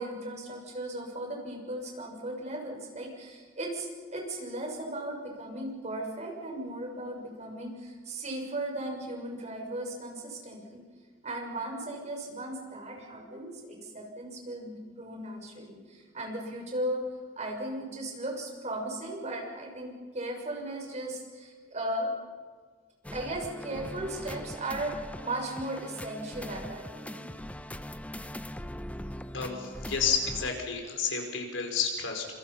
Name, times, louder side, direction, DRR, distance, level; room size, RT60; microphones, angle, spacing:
voice 1, 0.0-10.8 11.2-17.0 17.4-22.1 23.1-24.9 25.2-27.3, right 1 dB, 35° right, 1 dB, 6.5 m, -36 dB
sound 1, 23.0-30.5, equal, 5° left, 0.8 m, -41 dB
voice 2, 29.3-32.3, left 6 dB, 85° left, 3 dB, 4.9 m, -30 dB
27.5 x 27.0 x 5.7 m, 1.5 s
head